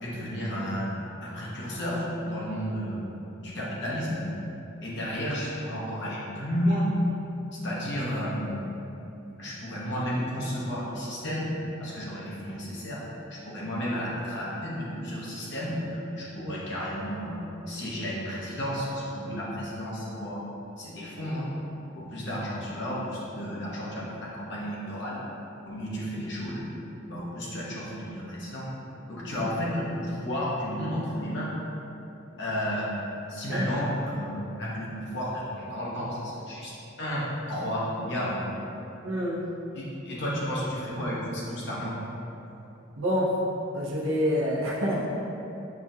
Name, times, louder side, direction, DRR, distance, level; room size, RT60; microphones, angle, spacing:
voice 1, 0.0-0.9 1.2-3.1 3.4-4.3 4.8-6.9 7.6-8.6 9.4-11.5 11.8-13.0 13.5-17.4 17.7-20.4 20.8-21.5 22.0-25.2 25.6-26.7 27.0-28.7 29.1-31.5 32.4-32.9 33.3-36.7 37.0-38.4 39.7-42.0, equal, 60° left, -6 dB, 0.9 m, -32 dB
voice 2, 39.0-39.4 43.0-43.3 43.7-45.1, equal, 80° right, -4 dB, 0.7 m, -27 dB
5.8 x 2.3 x 2.7 m, 2.9 s
head